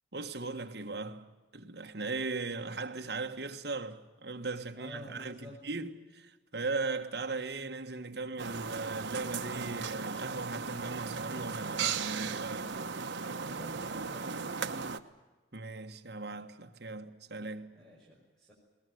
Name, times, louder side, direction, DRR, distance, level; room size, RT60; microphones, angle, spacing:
voice 1, 0.1-12.8 15.5-17.7, right 3 dB, 60° right, 1.6 m, -38 dB
voice 2, 4.8-5.6 13.4-14.9 17.8-18.5, equal, 5° left, 5.5 m, -50 dB
sound 1, 8.4-15.0, right 5 dB, 80° right, 1.1 m, -36 dB
21.0 x 19.5 x 9.3 m
head